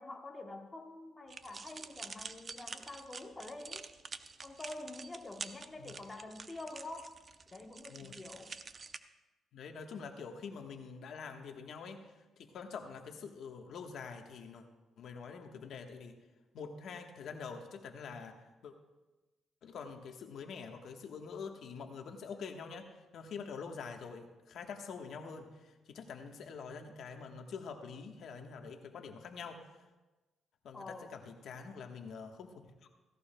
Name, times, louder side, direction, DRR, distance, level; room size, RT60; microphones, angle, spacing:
voice 1, 0.0-3.9 4.4-7.1 7.5-8.6 30.7-31.1, left 2 dB, 25° left, 3 dB, 1.1 m, -47 dB
sound 1, 1.3-9.0, right 4 dB, 40° right, 0.7 m, -47 dB
voice 2, 9.5-12.1 12.4-14.6 15.0-16.1 16.5-18.7 19.6-29.7 30.6-32.7, left 5 dB, 70° left, 4 dB, 1.2 m, -46 dB
16.5 x 16.5 x 2.2 m, 1.1 s
cardioid pair, 90°, 0 cm